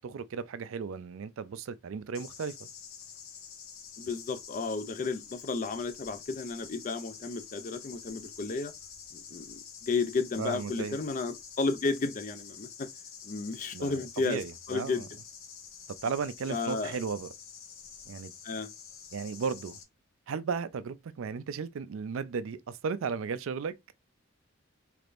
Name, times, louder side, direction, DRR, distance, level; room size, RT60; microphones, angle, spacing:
voice 1, 0.0-2.7 10.4-11.0 13.7-15.1 16.0-17.3 18.1-18.3 19.1-19.8 20.3-23.7, right 5 dB, 70° right, 0.4 m, -35 dB
sound 1, 2.1-19.8, left 7 dB, 70° left, 0.7 m, -48 dB
voice 2, 4.0-8.7 9.1-12.9 13.2-14.4 14.7-15.0 16.5-16.9 18.4-18.7, left 4 dB, 40° left, 0.4 m, -33 dB
3.4 x 3.3 x 2.5 m
head